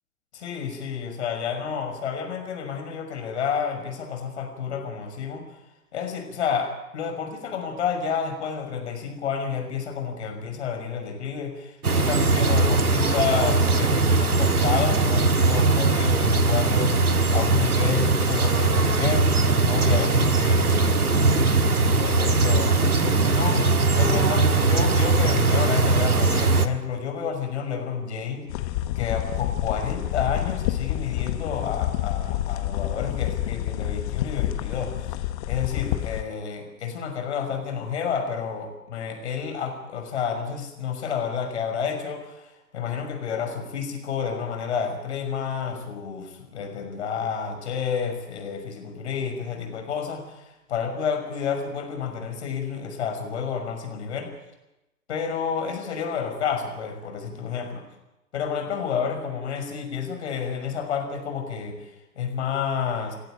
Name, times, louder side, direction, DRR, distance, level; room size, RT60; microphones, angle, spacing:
voice 1, 0.3-5.6 5.9-23.7 23.9-28.5 29.0-35.0 35.5-54.3 55.1-57.8 58.3-63.2, left 6 dB, 50° left, 5 dB, 6.0 m, -30 dB
sound 1, 11.8-26.7, right 3 dB, 75° right, 1.9 m, -20 dB
sound 2, 28.5-36.2, left 14 dB, 25° left, 1.1 m, -28 dB
29.5 x 12.0 x 9.1 m, 0.96 s
figure-of-eight pair, 120°, 45 cm